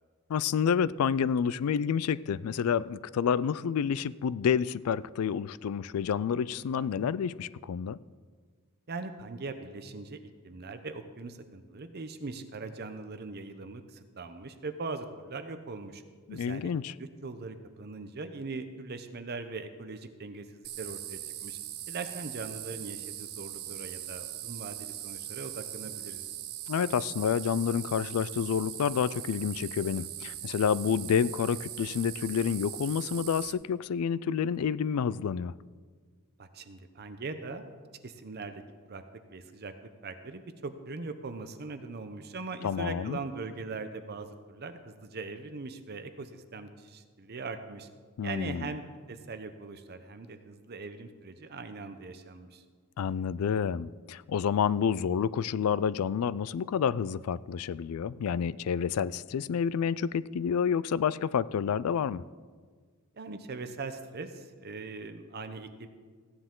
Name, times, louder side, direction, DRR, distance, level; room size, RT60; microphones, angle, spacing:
voice 1, 0.3-8.0 16.3-16.9 26.7-35.6 42.6-43.2 48.2-48.7 53.0-62.2, left 7 dB, 85° left, 0.4 m, -29 dB
voice 2, 8.9-10.2 10.4-16.0 16.3-16.7 17.0-21.6 21.9-26.3 36.4-37.7 38.0-38.6 38.9-39.0 39.3-47.9 48.2-52.6 63.1-65.9, right 3 dB, 50° right, 0.7 m, -41 dB
sound 1, 20.6-33.5, right 13 dB, 85° right, 0.7 m, -40 dB
15.5 x 9.8 x 3.8 m
head